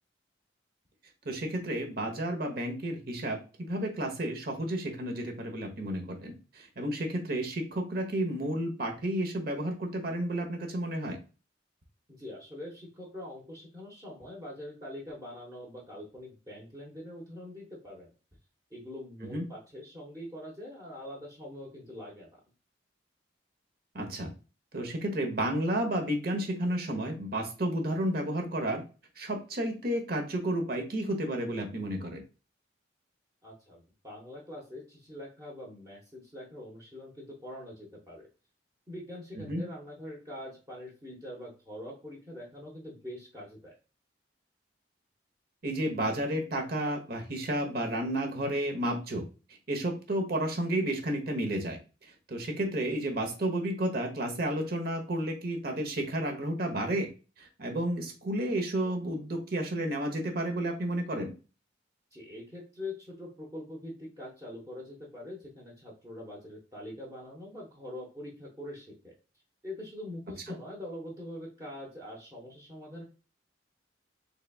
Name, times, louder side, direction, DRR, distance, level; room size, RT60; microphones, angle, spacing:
voice 1, 1.2-11.2 19.3-19.5 23.9-24.3 24.7-28.8 29.2-32.2 39.4-39.6 45.6-49.2 49.7-51.8 52.3-57.1 57.6-61.3, right 1 dB, 55° right, 4 dB, 1.0 m, -31 dB
voice 2, 12.2-18.1 18.7-22.4 33.4-38.3 38.9-43.7 62.1-69.1 69.6-73.0, left 1 dB, 20° right, -4 dB, 1.0 m, -44 dB
4.0 x 3.4 x 2.3 m, 0.34 s
head